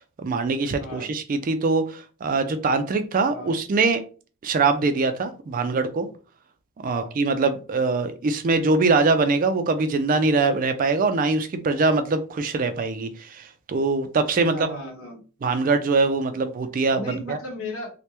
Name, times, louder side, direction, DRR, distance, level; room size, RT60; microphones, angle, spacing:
voice 1, 0.0-4.0 4.4-6.1 6.8-14.7 15.4-17.4, right 3 dB, 40° right, 9 dB, 0.3 m, -23 dB
voice 2, 0.8-1.1 3.3-3.5 6.8-7.1 14.4-15.2 16.9-17.9, left 1 dB, 70° left, 0 dB, 1.2 m, -35 dB
3.2 x 2.1 x 2.9 m, 0.37 s
head